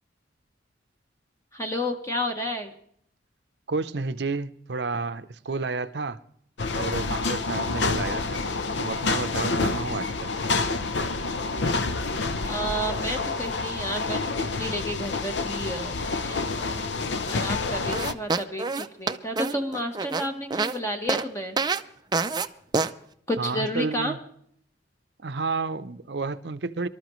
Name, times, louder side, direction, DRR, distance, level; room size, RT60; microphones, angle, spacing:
voice 1, 1.5-2.7 12.4-14.3 14.6-16.0 16.2-16.9 17.2-21.6 23.3-24.1, equal, 15° left, 1.1 m, -31 dB
voice 2, 3.7-6.2 6.7-8.4 8.8-10.3 23.4-24.2 25.2-26.9, right 3 dB, 60° right, 0.7 m, -31 dB
sound 1, 6.6-18.1, left 3 dB, 70° left, 0.8 m, -28 dB
sound 2, 17.9-20.8 21.1-21.2 21.6-21.8 22.1-22.5 22.7-22.9, right 4 dB, 20° right, 0.5 m, -26 dB
24.5 x 13.0 x 3.1 m
head